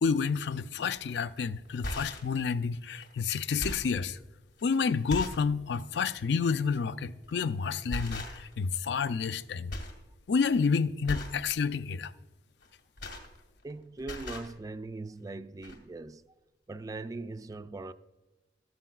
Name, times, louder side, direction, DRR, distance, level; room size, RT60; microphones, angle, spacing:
voice 1, 0.0-4.2 4.6-9.7 10.3-12.1, left 5 dB, 70° left, 0.4 m, -29 dB
sound 1, 0.9-1.1 1.7-2.3 3.0-3.1 3.4-4.0 4.6-4.7 5.1-5.5 5.9-6.1 7.2-7.5 7.9-8.6 8.9-9.4 9.7-10.0 10.3-10.6 11.0-11.4 12.6-13.7 14.0-14.5 15.3-15.4 15.6-15.8, left 1 dB, 90° left, 2.0 m, -38 dB
voice 2, 13.6-16.3 16.7-17.9, right 3 dB, 20° right, 0.3 m, -40 dB
14.0 x 13.0 x 2.4 m
head